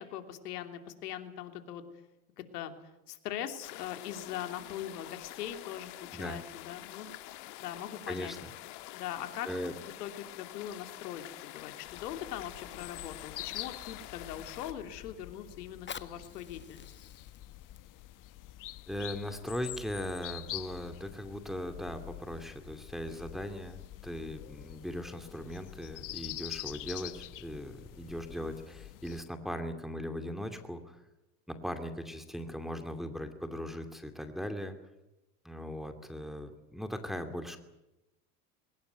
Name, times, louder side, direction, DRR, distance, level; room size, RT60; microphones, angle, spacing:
voice 1, 0.0-1.8 2.4-2.7 3.1-5.9 6.2-7.1 7.6-8.3 8.9-9.5 10.0-11.2 11.5-16.9, left 11 dB, 85° left, 7 dB, 3.0 m, -41 dB
sound 1, 3.6-14.7, left 17 dB, 60° left, 1.8 m, -47 dB
voice 2, 8.1-8.5 9.4-9.7 18.9-31.0 31.5-34.7 35.4-37.6, equal, ahead, 6 dB, 2.5 m, -39 dB
sound 2, 11.9-29.2, left 15 dB, 45° left, 1.1 m, -46 dB
Fire, 15.6-20.6 21.2-21.3, left 7 dB, 25° left, 1.3 m, -50 dB
21.5 x 19.5 x 9.4 m, 0.97 s
supercardioid pair, 100°, 46 cm